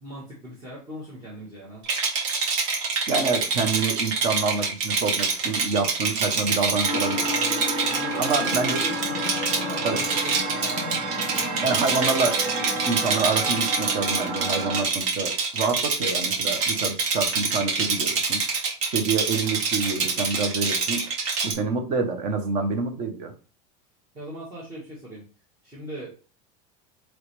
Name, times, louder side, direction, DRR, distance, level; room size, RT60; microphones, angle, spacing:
voice 1, 0.0-1.8 7.9-10.9 24.1-25.2 25.6-26.2, right 1 dB, 20° right, -6 dB, 1.3 m, -39 dB
Rattle, 1.8-21.5, right 4 dB, 55° right, 1.4 m, -26 dB
voice 2, 3.1-7.3 8.2-8.8 9.8-10.0 11.6-18.4 18.9-21.1 21.4-23.3, right 4 dB, 35° right, 6 dB, 0.8 m, -27 dB
sound 1, 6.8-14.8, right 1 dB, 85° right, 1.9 m, -30 dB
4.7 x 3.0 x 3.2 m, 0.36 s
supercardioid pair, 170°, 19 cm